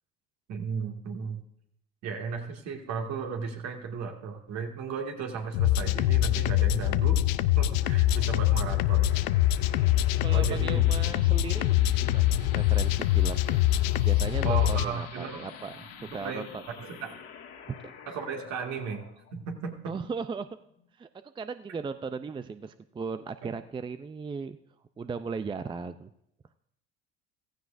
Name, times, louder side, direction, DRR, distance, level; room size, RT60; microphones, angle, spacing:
voice 1, 0.5-1.4 2.0-7.2 7.6-9.2 10.3-10.8 14.4-15.5 16.1-16.4 16.8-17.2 18.1-19.0 19.3-19.9 23.4-23.5, right 6 dB, 60° right, 2 dB, 2.1 m, -35 dB
sound 1, 5.5-14.8, left 14 dB, 75° left, 0.5 m, -24 dB
sound 2, 7.7-20.9, left 7 dB, 55° left, 1.9 m, -48 dB
voice 2, 10.2-13.6 14.0-16.6 17.7-17.9 19.9-20.5 21.0-21.1 21.4-24.6 25.0-26.1, right 5 dB, 15° right, 11 dB, 0.5 m, -37 dB
15.5 x 15.0 x 2.6 m, 0.74 s
hypercardioid pair, 70°, 30 cm